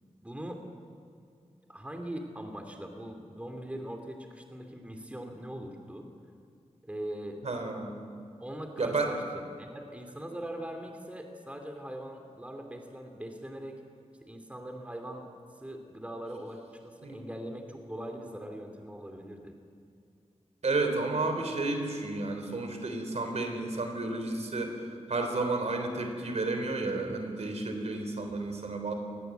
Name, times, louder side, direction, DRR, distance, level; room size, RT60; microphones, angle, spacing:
voice 1, 0.2-0.6 1.7-6.1 6.8-7.4 8.4-13.8 14.2-15.3 15.6-19.5, right 1 dB, 10° right, 4 dB, 2.5 m, -41 dB
voice 2, 7.4-7.9 8.8-9.1 17.0-17.2 20.6-24.8 25.1-28.9, right 3 dB, 65° right, 5 dB, 3.7 m, -31 dB
25.5 x 19.5 x 8.0 m, 2.4 s
wide cardioid pair, 110°, 12 cm